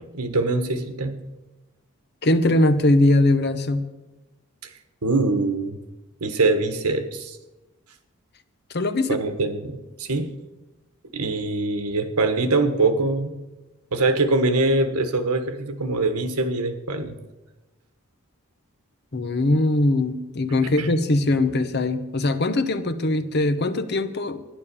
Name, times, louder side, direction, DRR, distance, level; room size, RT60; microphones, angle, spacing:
voice 1, 0.1-1.1 5.0-5.8 6.2-7.4 9.1-10.3 11.1-13.3 13.9-17.1 20.6-20.9, right 2 dB, 85° right, 9 dB, 1.4 m, -23 dB
voice 2, 2.2-3.8 8.7-9.2 19.1-24.4, left 2 dB, 45° left, 11 dB, 0.8 m, -21 dB
12.0 x 10.5 x 6.9 m, 1.1 s
head